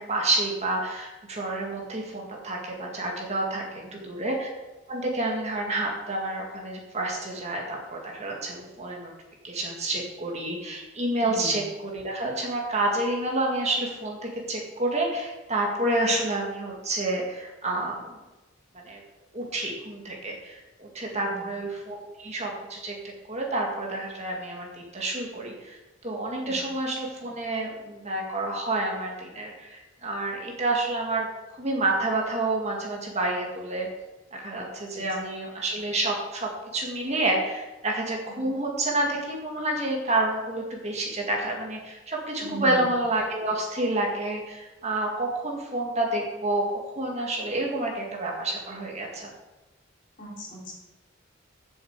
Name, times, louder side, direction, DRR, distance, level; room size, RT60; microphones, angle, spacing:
voice 1, 0.0-4.5 4.9-9.1 9.4-18.1 18.9-19.0 19.3-22.9 23.3-25.8 26.0-31.3 31.5-33.9 34.3-46.6 47.0-49.3, right 2 dB, 35° right, -1 dB, 2.0 m, -29 dB
voice 2, 11.2-11.6 15.9-16.1 21.1-21.4 26.4-26.6 34.9-35.0 38.3-38.4 42.4-42.8 50.2-50.7, right 2 dB, 40° left, -3 dB, 3.1 m, -38 dB
7.4 x 7.3 x 8.0 m, 1.1 s
head